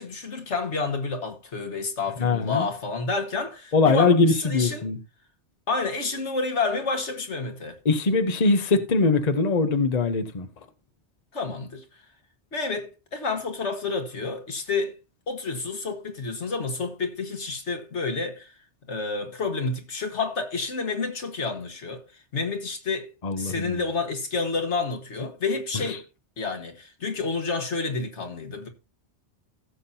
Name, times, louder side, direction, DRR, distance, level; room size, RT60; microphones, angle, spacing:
voice 1, 0.0-4.9 5.7-7.8 11.3-11.8 12.5-15.0 15.3-18.5 18.9-22.0 22.3-23.1 23.4-26.0 26.4-28.7, left 4 dB, 85° left, 2.0 m, -29 dB
voice 2, 2.2-2.7 3.7-5.0 7.8-10.5 23.2-23.8, left 3 dB, 40° left, 1.1 m, -22 dB
16.0 x 7.3 x 2.8 m
omnidirectional pair, 1.2 m